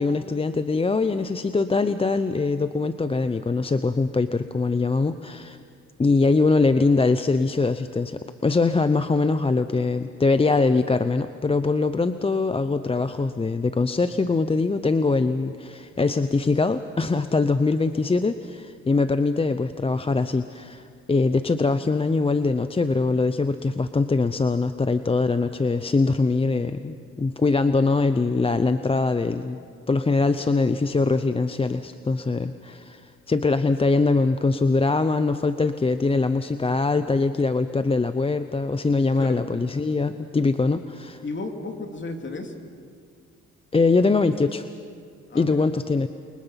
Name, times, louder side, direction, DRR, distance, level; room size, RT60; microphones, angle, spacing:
voice 1, 0.0-5.6 6.0-29.6 29.9-41.2 43.7-44.7 45.3-46.1, left 3 dB, 20° left, 11 dB, 0.7 m, -22 dB
voice 2, 41.2-42.5 45.3-45.7, left 3 dB, 40° left, 4 dB, 3.0 m, -33 dB
29.0 x 23.5 x 5.8 m, 2.2 s
cardioid pair, 90°, 30 cm